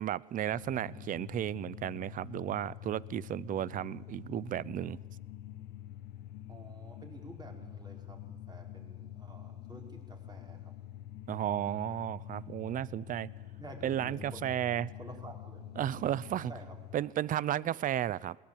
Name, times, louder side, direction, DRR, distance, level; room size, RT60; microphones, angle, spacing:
voice 1, 0.0-5.0 11.3-13.3 13.8-14.9 15.8-16.5 16.9-18.4, right 11 dB, 55° right, 0.7 m, -33 dB
sound 1, 0.5-17.0, left 12 dB, 75° left, 1.0 m, -47 dB
voice 2, 6.5-10.7 13.6-14.5 15.0-15.6 16.5-16.8, right 2 dB, 25° right, 4.8 m, -50 dB
21.5 x 19.0 x 8.6 m
cardioid pair, 110°, 17 cm